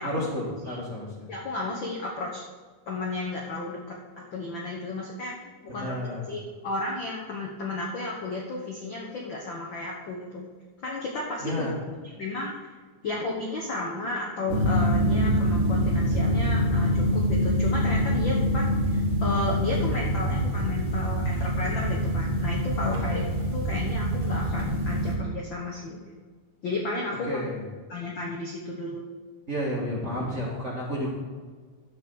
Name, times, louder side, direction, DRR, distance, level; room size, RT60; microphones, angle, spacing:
voice 1, 0.0-1.3 5.7-6.2 11.4-11.7 22.9-23.2 27.2-27.6 29.5-31.1, equal, 25° right, -5 dB, 1.6 m, -31 dB
voice 2, 1.3-2.4 2.9-5.4 5.7-5.9 6.3-10.5 10.8-11.6 12.0-12.7 13.0-23.2 23.5-26.0 26.6-27.4 27.9-29.0, left 2 dB, 70° left, -2 dB, 1.1 m, -33 dB
sound 1, 14.5-25.1, equal, 45° right, 1.8 m, -25 dB
12.5 x 4.9 x 7.0 m, 1.5 s
omnidirectional pair, 3.9 m